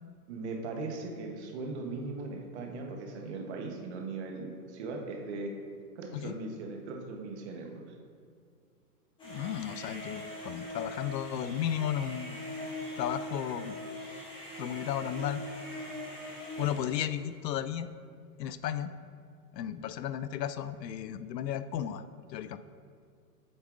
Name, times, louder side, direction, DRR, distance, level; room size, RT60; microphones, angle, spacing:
voice 1, 0.3-5.5 6.0-7.9, right 3 dB, 45° right, 2 dB, 1.0 m, -39 dB
voice 2, 9.2-12.4 13.0-13.8 14.6-15.4 16.6-17.9 18.4-18.9 19.5-22.0 22.3-22.6, left 10 dB, 85° left, 13 dB, 0.5 m, -34 dB
sound 1, 9.2-17.2, left 1 dB, 10° left, 1.3 m, -41 dB
8.0 x 7.1 x 2.5 m, 2.1 s
hypercardioid pair, 145°, 48 cm